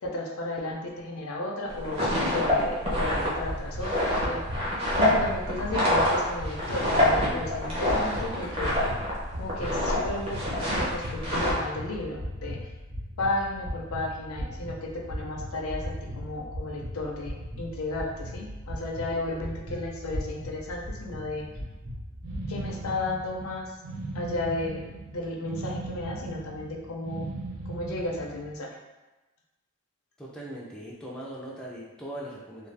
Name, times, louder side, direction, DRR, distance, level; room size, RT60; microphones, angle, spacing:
voice 1, 0.0-8.8 9.4-12.7 13.2-21.6 22.5-23.7 24.1-24.8 25.1-27.3 27.7-28.7, left 2 dB, 70° left, 0 dB, 0.5 m, -34 dB
sound 1, 1.7-9.2 9.4-10.0 10.3-11.5, left 1 dB, 25° right, 0.7 m, -26 dB
sound 2, 3.1-22.7, equal, 55° right, 1.0 m, -38 dB
sound 3, 22.2-28.5, right 2 dB, 70° right, 0.4 m, -38 dB
voice 2, 30.2-32.7, right 1 dB, 5° left, -5 dB, 0.3 m, -40 dB
2.5 x 2.3 x 3.2 m, 1.1 s
head